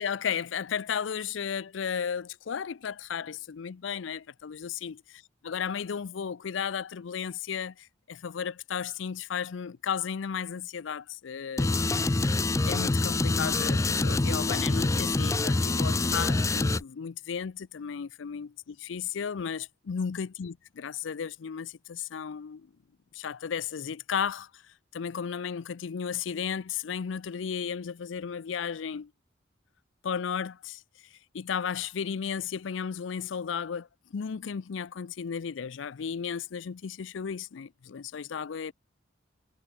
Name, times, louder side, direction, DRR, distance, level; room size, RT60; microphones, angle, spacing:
voice 1, 0.0-5.0 5.4-12.2 12.7-22.7 23.1-24.6 24.9-29.1 30.0-30.8 31.3-38.7, left 7 dB, 85° left, 0.5 m, -34 dB
sound 1, 11.6-16.8, left 2 dB, 15° left, 0.4 m, -26 dB
head